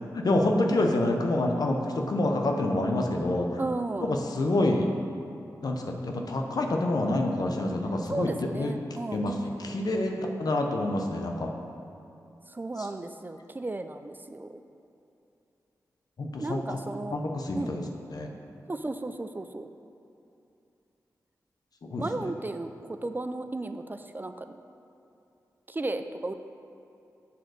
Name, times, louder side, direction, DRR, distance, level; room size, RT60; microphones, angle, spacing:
voice 1, 0.1-3.6 4.0-4.9 5.6-8.7 9.1-11.5 16.2-16.8 17.1-17.8 18.1-18.3 21.8-22.2, left 2 dB, 65° left, 2 dB, 0.8 m, -27 dB
voice 2, 3.6-4.2 8.1-9.2 12.5-14.6 16.4-17.2 17.5-17.7 18.7-19.7 22.0-24.6 25.7-26.3, right 2 dB, 25° right, 8 dB, 0.4 m, -34 dB
6.9 x 3.8 x 6.4 m, 2.7 s
cardioid pair, 45°, 7 cm